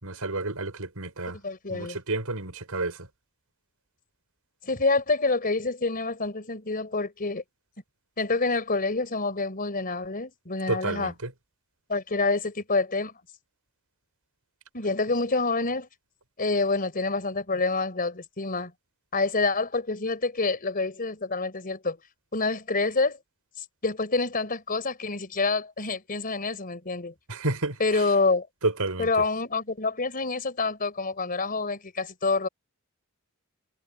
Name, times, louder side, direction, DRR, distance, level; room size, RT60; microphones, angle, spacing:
voice 1, 0.0-1.4 1.7-3.1 10.7-11.3 27.3-28.0 28.6-29.2, right 2 dB, 80° right, 5.2 m, -30 dB
voice 2, 1.4-2.0 4.6-7.4 8.2-11.1 11.9-13.1 14.7-15.9 16.4-18.7 19.1-22.0 22.3-23.2 23.8-27.1 27.8-28.5 29.0-32.5, left 3 dB, 40° left, 4.1 m, -27 dB
head